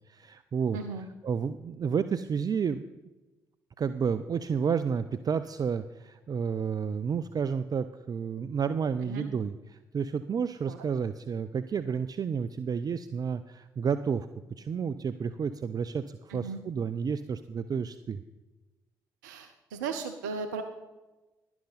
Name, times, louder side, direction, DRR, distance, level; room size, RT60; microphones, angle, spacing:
voice 1, 0.1-0.8 1.2-2.8 3.8-14.3 14.6-18.2, right 6 dB, 40° right, 12 dB, 0.5 m, -31 dB
voice 2, 0.7-1.1 9.0-9.3 10.7-10.8 16.3-16.6 19.2-20.6, right 5 dB, 85° right, 7 dB, 0.6 m, -36 dB
11.5 x 10.5 x 4.1 m, 1.1 s
hypercardioid pair, 45°, 10 cm